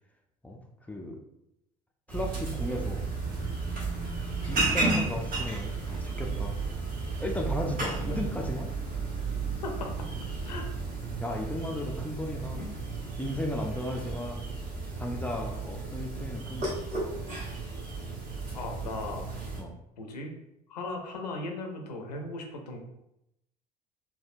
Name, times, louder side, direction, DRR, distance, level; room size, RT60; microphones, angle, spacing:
voice 1, 0.9-1.2 2.1-3.0 4.5-6.6 7.2-8.7 11.2-12.6 13.2-14.4 15.0-16.8 19.6-19.7, left 1 dB, 5° left, 1 dB, 0.4 m, -35 dB
sound 1, 2.1-19.6, right 3 dB, 45° right, 1.3 m, -33 dB
voice 2, 9.6-10.1 10.4-10.7 18.5-19.3 20.0-20.4 20.7-22.8, left 2 dB, 80° left, 3 dB, 0.5 m, -37 dB
3.3 x 2.2 x 2.5 m, 0.82 s
figure-of-eight pair, 60°, 20 cm